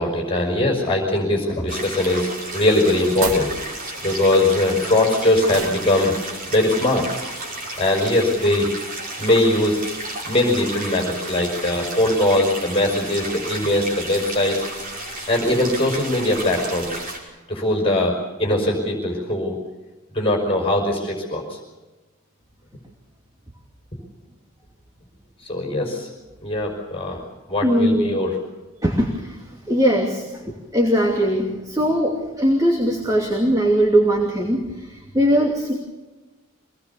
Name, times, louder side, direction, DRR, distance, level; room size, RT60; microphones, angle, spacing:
voice 1, 0.0-3.5 4.0-6.2 6.5-7.1 7.8-8.7 9.2-9.8 10.3-14.6 15.3-17.0 17.5-19.6 20.1-21.6 25.5-26.1 26.4-27.2 27.5-28.4, left 1 dB, 25° left, 2 dB, 5.5 m, -21 dB
sound 1, 1.7-17.2, right 2 dB, 40° right, 5.6 m, -32 dB
sound 2, 3.2-3.5 5.5-5.9, right 3 dB, 90° right, 2.3 m, -28 dB
voice 2, 27.6-28.1 28.8-29.3 29.7-30.4 30.7-34.6 35.1-35.7, equal, 15° right, -1 dB, 2.7 m, -19 dB
25.5 x 19.5 x 7.1 m, 1.2 s
head